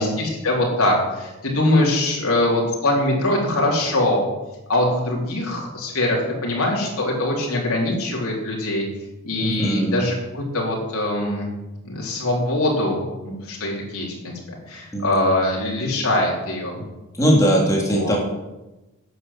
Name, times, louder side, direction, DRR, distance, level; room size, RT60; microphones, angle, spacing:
voice 1, 0.2-4.2 4.7-8.9 9.2-11.5 11.9-14.3 14.7-16.8 17.9-18.1, left 1 dB, 90° left, -3 dB, 3.7 m, -22 dB
voice 2, 9.4-10.0 14.9-15.1 16.8-16.9 17.2-18.2, equal, 15° left, -3 dB, 3.2 m, -20 dB
11.5 x 8.4 x 7.7 m, 1.0 s
head